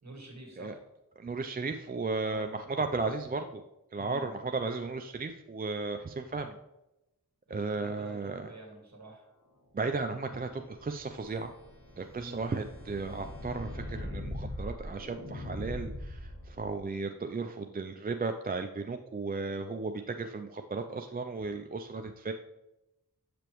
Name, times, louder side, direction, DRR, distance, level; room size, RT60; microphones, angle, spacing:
voice 1, 0.0-0.8 2.2-2.6 4.0-4.3 7.5-9.2 12.1-12.4, right 2 dB, 50° right, 1 dB, 1.7 m, -47 dB
voice 2, 1.2-3.6 3.9-6.6 7.5-8.5 9.7-11.5 12.0-22.3, right 3 dB, 25° right, 6 dB, 0.4 m, -35 dB
sound 1, 10.5-16.8, left 1 dB, 60° left, 1.9 m, -41 dB
6.9 x 5.0 x 3.0 m, 0.92 s
wide cardioid pair, 45°, 35 cm